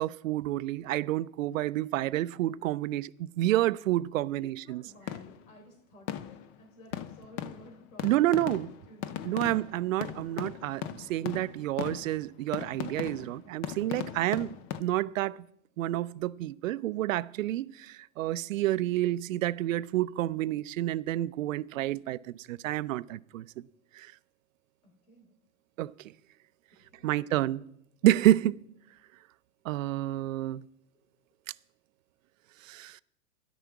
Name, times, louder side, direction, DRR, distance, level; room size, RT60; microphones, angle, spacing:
voice 1, 0.0-4.8 8.0-8.7 9.2-15.4 15.8-23.5 24.0-24.1 25.8-25.9 27.0-27.7 28.0-28.6 29.6-30.6 32.6-33.0, right 14 dB, 65° right, 0.6 m, -29 dB
voice 2, 4.3-8.4 8.9-9.2 24.8-25.3 26.7-27.5 28.0-28.1 30.9-31.1, left 1 dB, 70° left, 3.7 m, -55 dB
sound 1, 5.1-5.5 6.1-6.6 6.9-14.8, left 11 dB, 30° left, 0.5 m, -39 dB
13.0 x 11.0 x 4.7 m
hypercardioid pair, 130°, 42 cm